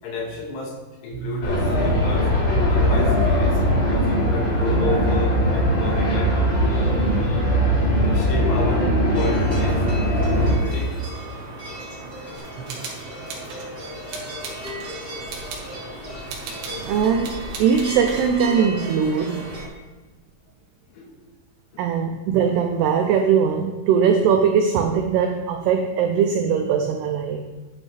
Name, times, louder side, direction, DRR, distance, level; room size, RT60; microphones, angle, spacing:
voice 1, 0.0-0.8 1.0-2.4 2.7-6.4 6.6-7.6 8.0-9.8 10.2-10.9 20.9-21.1 21.7-21.9, left 3 dB, 70° left, 0 dB, 3.3 m, -32 dB
sound 1, 1.4-10.5, equal, 30° left, 3.3 m, -20 dB
sound 2, 9.1-19.7, right 1 dB, 25° right, 3.0 m, -35 dB
sound 3, 12.3-13.7 14.1-14.9 15.3-15.7 16.3-16.9 17.2-18.3, right 4 dB, 70° right, 3.4 m, -37 dB
voice 2, 16.8-19.5 21.8-27.5, right 7 dB, 85° right, 5 dB, 2.3 m, -20 dB
11.5 x 9.9 x 3.3 m, 1.3 s
omnidirectional pair, 5.4 m